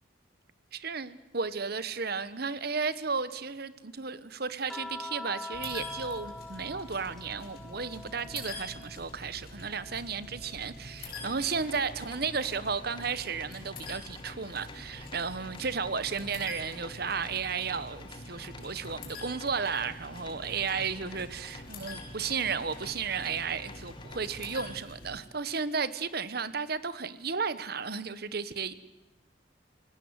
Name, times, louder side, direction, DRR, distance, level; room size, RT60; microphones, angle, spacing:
voice 1, 0.8-28.7, right 5 dB, 55° right, 1.2 m, -34 dB
sound 1, 4.7-9.2 9.5-11.2 12.7-12.9, left 2 dB, ahead, 0.8 m, -45 dB
sound 2, 5.5-25.2, left 2 dB, 50° left, 5.9 m, -46 dB
sound 3, 11.0-24.8, left 3 dB, 25° left, 1.6 m, -50 dB
27.5 x 18.5 x 8.1 m
head